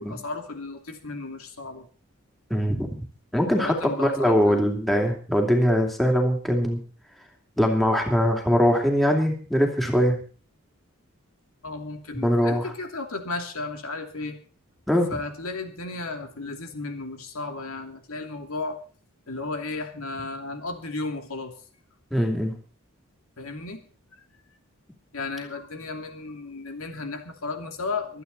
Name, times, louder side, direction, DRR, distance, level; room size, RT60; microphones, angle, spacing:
voice 1, 0.0-1.9 3.4-4.7 11.6-14.4 15.1-18.8 19.3-21.5 23.4-23.9 24.1-24.2 25.1-28.2, left 3 dB, 90° left, 5 dB, 2.6 m, -34 dB
voice 2, 2.5-3.0 3.3-6.8 7.6-10.2 12.2-12.7 14.9-15.1 22.1-22.5, equal, ahead, 2 dB, 2.7 m, -22 dB
25.0 x 9.1 x 4.0 m, 0.40 s
head